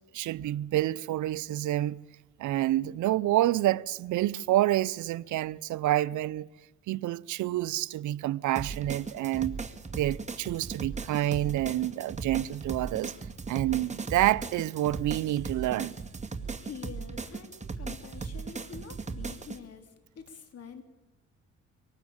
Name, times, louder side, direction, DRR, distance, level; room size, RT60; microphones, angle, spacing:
voice 1, 0.1-2.0 2.4-6.5 6.9-9.6 9.9-13.1 13.5-15.9, right 14 dB, 75° right, 0.7 m, -28 dB
sound 1, 8.6-19.6, right 4 dB, 25° right, 2.1 m, -38 dB
voice 2, 16.6-19.9 20.1-20.8, left 6 dB, 55° left, 3.4 m, -46 dB
24.0 x 19.0 x 8.8 m
cardioid pair, 90°, 30 cm